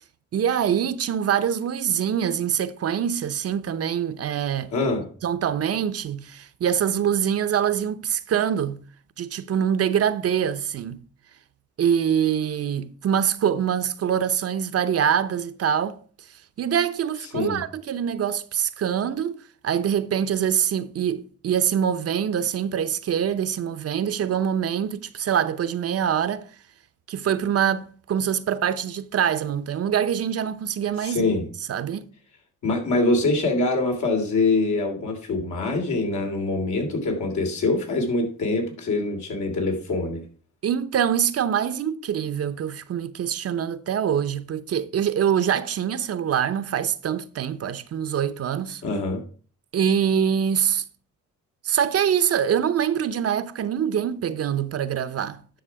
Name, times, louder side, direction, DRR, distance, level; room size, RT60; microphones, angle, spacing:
voice 1, 0.3-4.7 5.2-8.8 9.2-11.0 11.8-16.0 16.6-19.4 19.6-26.5 27.1-31.3 31.7-32.0 40.6-48.8 49.7-50.8 51.6-55.4, right 8 dB, 50° right, 0.8 m, -24 dB
voice 2, 4.7-5.1 17.3-17.6 31.0-31.5 32.6-40.2 48.8-49.2, left 2 dB, 70° left, 3.1 m, -24 dB
10.0 x 6.1 x 4.7 m
cardioid pair, 90°, 30 cm